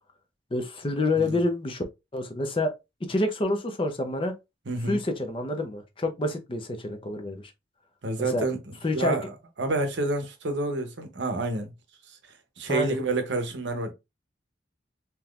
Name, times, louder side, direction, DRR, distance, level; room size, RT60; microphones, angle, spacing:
voice 1, 0.5-1.8 2.1-2.7 3.1-4.3 4.9-7.4 8.3-8.4 8.8-9.2 12.7-13.0, left 2 dB, 25° left, 0.6 m, -27 dB
voice 2, 4.7-5.0 8.0-9.2 9.6-11.7 12.1-12.2 12.6-13.9, right 2 dB, 70° right, 0.8 m, -29 dB
3.6 x 2.8 x 2.4 m
head